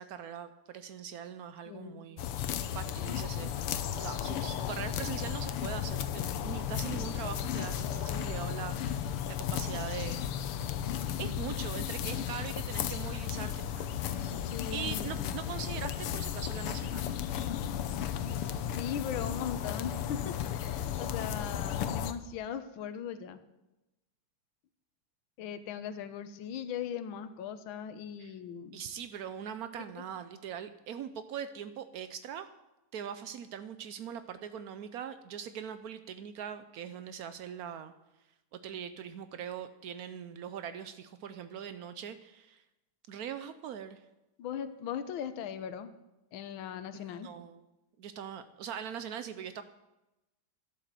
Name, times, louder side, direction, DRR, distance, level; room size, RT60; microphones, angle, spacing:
voice 1, 0.0-3.5 4.0-10.2 10.8-17.1 28.2-28.3 28.7-32.5 32.9-37.9 38.5-42.6 43.1-44.0 46.9-47.6 48.0-49.6, right 8 dB, 85° right, 11 dB, 0.8 m, -42 dB
voice 2, 1.7-2.1 14.4-15.4 18.7-23.4 25.4-28.8 30.0-30.1 44.4-45.9 46.3-47.3, left 8 dB, 70° left, 10 dB, 1.6 m, -39 dB
sound 1, 2.2-22.1, left 9 dB, 85° left, 1.8 m, -34 dB
12.0 x 12.0 x 7.6 m, 0.98 s
omnidirectional pair, 2.4 m